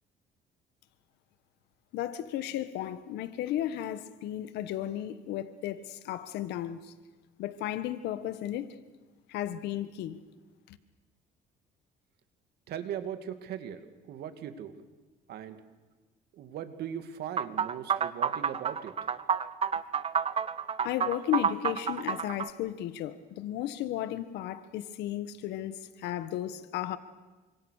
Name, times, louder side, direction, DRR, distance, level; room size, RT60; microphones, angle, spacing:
voice 1, 1.9-6.9 7.4-8.7 9.3-10.2 10.7-10.8 20.8-27.0, left 12 dB, 85° left, 1.5 m, -34 dB
voice 2, 12.7-14.7 15.3-15.6 16.3-19.1, right 9 dB, 70° right, 2.4 m, -39 dB
sound 1, 17.4-22.5, right 7 dB, 35° right, 1.1 m, -29 dB
29.0 x 25.5 x 6.6 m
cardioid pair, 110°, 17 cm